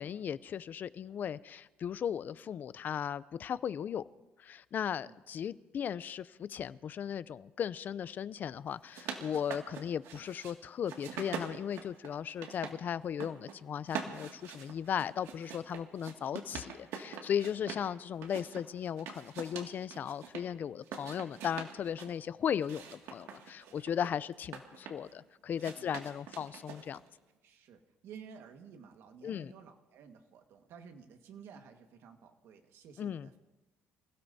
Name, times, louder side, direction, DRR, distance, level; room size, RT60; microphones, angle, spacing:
voice 1, 0.0-4.0 4.4-27.0 29.2-29.5 33.0-33.3, left 8 dB, 40° left, 17 dB, 0.4 m, -37 dB
sound 1, 8.7-10.5 10.9-12.8 13.0-13.6 13.9-17.9 18.2-20.4 20.8-22.1 22.6-25.1 25.6-27.1, right 7 dB, 80° right, 2.1 m, -44 dB
voice 2, 27.4-33.4, right 6 dB, 60° right, 5 dB, 1.6 m, -53 dB
27.5 x 16.5 x 2.7 m, 1.1 s
cardioid pair, 135°, 5 cm